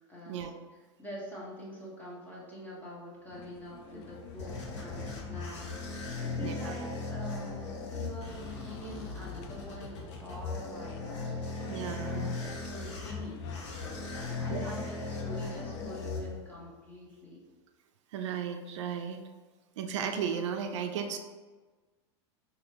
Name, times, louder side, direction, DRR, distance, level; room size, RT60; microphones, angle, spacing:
voice 1, 0.1-0.4 1.0-11.6 12.0-17.4, equal, 10° left, -6 dB, 1.4 m, -45 dB
sound 1, 3.3-16.1, left 6 dB, 60° left, 0.5 m, -50 dB
sound 2, 3.8-16.8, left 3 dB, 85° left, 1.0 m, -38 dB
voice 2, 6.4-6.9 11.7-12.4 14.5-14.7 18.1-19.2 19.8-21.2, right 7 dB, 80° right, 5 dB, 0.4 m, -35 dB
3.9 x 2.8 x 3.0 m, 1.3 s
hypercardioid pair, 115°, 15 cm